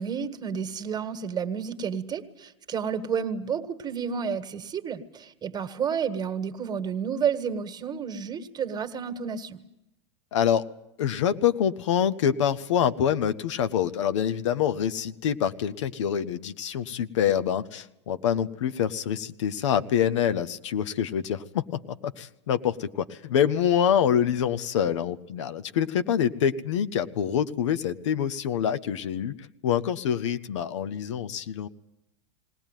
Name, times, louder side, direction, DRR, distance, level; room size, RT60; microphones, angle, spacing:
voice 1, 0.0-9.6, right 7 dB, 25° right, 9 dB, 1.7 m, -31 dB
voice 2, 10.3-10.7 11.0-21.6 22.0-29.3 29.6-31.7, left 9 dB, 70° left, 12 dB, 1.0 m, -26 dB
20.0 x 18.0 x 9.1 m, 0.88 s
hypercardioid pair, 90°, 16 cm